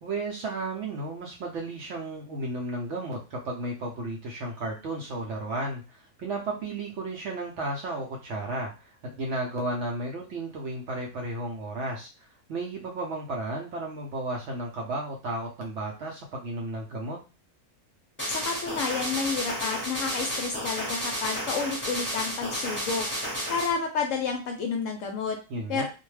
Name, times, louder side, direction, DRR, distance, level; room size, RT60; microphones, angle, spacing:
voice 1, 0.0-17.2 25.5-25.8, right 2 dB, 65° right, -1 dB, 0.7 m, -33 dB
sound 1, 18.2-23.7, equal, 10° left, 0.7 m, -32 dB
voice 2, 18.3-23.0 23.5-25.4 25.7-25.8, left 5 dB, 70° left, 2 dB, 0.8 m, -30 dB
2.5 x 2.2 x 3.1 m, 0.32 s
omnidirectional pair, 1.6 m